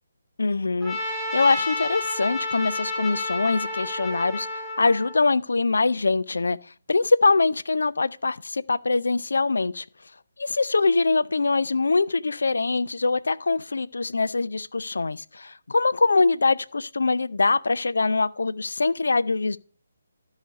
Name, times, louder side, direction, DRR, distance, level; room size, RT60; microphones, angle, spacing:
voice 1, 0.4-6.6 6.9-9.9 10.4-19.6, left 3 dB, 70° left, 0.4 m, -23 dB
Trumpet, 0.8-5.2, left 2 dB, 5° left, 4.0 m, -30 dB
13.0 x 4.9 x 6.6 m
figure-of-eight pair, 145°, 0 cm